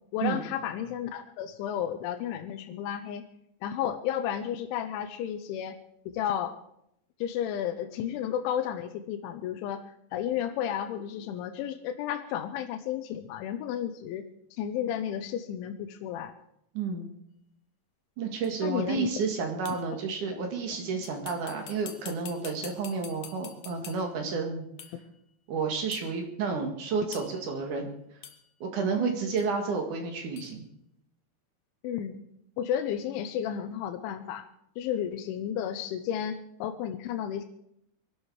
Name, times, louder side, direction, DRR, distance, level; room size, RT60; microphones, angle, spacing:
voice 1, 0.1-3.3 3.6-5.8 6.1-6.6 7.2-9.9 10.1-16.3 18.6-19.1 20.3-20.4 29.0-29.1 31.8-32.2 32.6-34.5 34.8-37.4, left 10 dB, 90° left, 7 dB, 3.3 m, -32 dB
voice 2, 16.7-17.1 18.2-24.7 25.5-27.9 28.6-30.6, right 5 dB, 50° right, 3 dB, 2.8 m, -31 dB
sound 1, 18.4-18.5 19.6-20.0 21.0-24.2 24.8-25.1 25.9-26.1 27.1-27.5 28.2-28.5 29.4-29.5 30.4-30.6, left 9 dB, 70° left, 1.9 m, -46 dB
22.5 x 12.0 x 4.8 m, 0.76 s
omnidirectional pair, 5.3 m